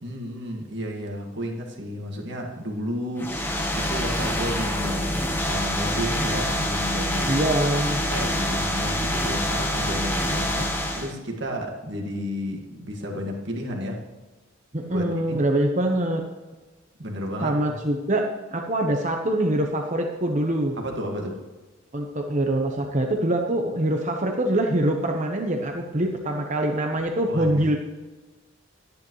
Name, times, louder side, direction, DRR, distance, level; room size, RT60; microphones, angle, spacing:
voice 1, 0.0-3.4 3.7-5.2 5.5-7.3 8.0-14.0 14.9-15.4 17.0-17.6 20.8-21.4 27.3-27.6, equal, 60° right, 0 dB, 2.0 m, -32 dB
sound 1, 3.2-11.1, left 1 dB, 10° left, 1.1 m, -26 dB
voice 2, 7.3-8.0 14.7-16.2 17.4-20.8 21.9-27.8, right 1 dB, 35° right, 2 dB, 1.0 m, -24 dB
13.5 x 10.5 x 3.2 m, 1.2 s
head